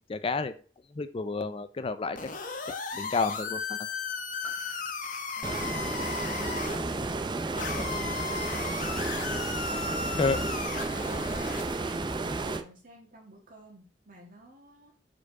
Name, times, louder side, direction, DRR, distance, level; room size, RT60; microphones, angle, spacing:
voice 1, 0.1-0.5 0.9-2.2 2.9-3.8 7.7-7.9 10.2-10.4, left 4 dB, 30° left, 12 dB, 0.4 m, -30 dB
sound 1, 2.2-6.8 7.6-11.8, left 5 dB, 50° left, 0.9 m, -35 dB
Piano, 4.4-9.9 10.6-10.7, left 2 dB, 10° left, 0.7 m, -53 dB
Stream, 5.4-12.6, right 3 dB, 25° right, 0.5 m, -32 dB
voice 2, 10.3-14.9, right 1 dB, 50° right, 0 dB, 2.0 m, -51 dB
4.9 x 4.6 x 4.7 m, 0.39 s
head